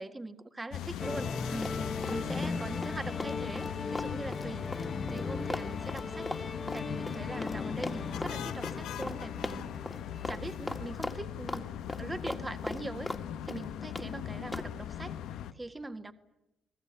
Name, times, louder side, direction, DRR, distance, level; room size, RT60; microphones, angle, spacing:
voice 1, 0.0-1.8 2.1-4.6 5.1-6.3 6.7-9.7 10.3-11.7 12.0-13.1 13.4-16.1, right 2 dB, 20° right, 8 dB, 1.7 m, -42 dB
sound 1, 0.7-15.5, left 10 dB, 85° left, 1.1 m, -40 dB
sound 2, 1.0-10.9, left 4 dB, 30° left, 1.3 m, -38 dB
Run, 1.6-2.5 2.8-7.6 7.8-8.4 8.6-8.8 9.0-9.2 9.4-10.0 10.2-10.4 10.7-11.6 11.9-13.2 13.5-14.1 14.5-14.7, left 1 dB, 10° left, 2.0 m, -38 dB
30.0 x 20.0 x 8.8 m, 0.91 s
cardioid pair, 90°, 0 cm